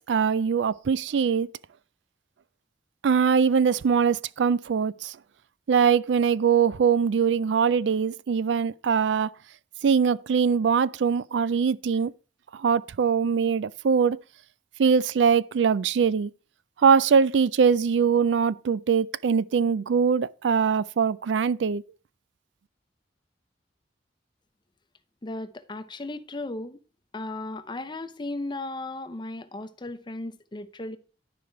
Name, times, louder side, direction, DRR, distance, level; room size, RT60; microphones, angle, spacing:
voice 1, 0.1-1.5 3.0-5.2 5.7-9.3 9.8-12.1 12.5-14.2 14.8-16.3 16.8-21.8, right 6 dB, 85° right, 0.4 m, -22 dB
voice 2, 25.2-26.8 27.1-31.0, left 2 dB, 25° left, 0.7 m, -35 dB
11.5 x 5.0 x 4.5 m
head